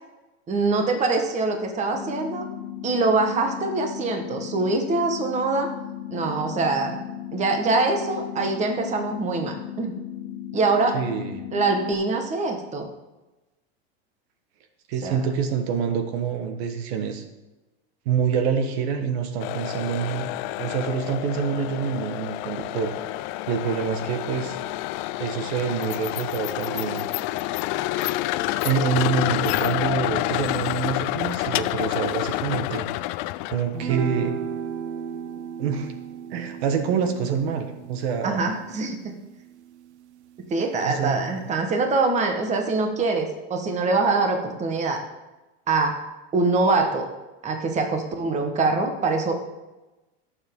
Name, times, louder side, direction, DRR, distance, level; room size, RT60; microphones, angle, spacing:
voice 1, 0.5-2.5 2.8-5.7 6.1-7.0 7.3-9.9 10.5-11.0 11.5-12.9 15.0-15.2 38.2-39.1 40.5-45.0 45.7-46.0 46.3-47.1 47.4-49.4, right 3 dB, 20° right, 4 dB, 1.3 m, -24 dB
sound 1, 1.9-11.9, left 11 dB, 80° left, 1.0 m, -36 dB
voice 2, 10.9-11.4 14.9-17.2 18.0-22.9 23.5-24.6 25.2-27.1 28.6-32.9 33.5-34.3 35.6-35.9 36.3-38.4 40.8-41.2, right 6 dB, 65° right, 6 dB, 1.5 m, -26 dB
sound 2, 19.4-33.7, left 17 dB, 45° left, 0.4 m, -28 dB
sound 3, 33.7-40.3, right 8 dB, 90° right, 0.8 m, -35 dB
17.0 x 7.2 x 3.8 m, 1.1 s
supercardioid pair, 145°, 33 cm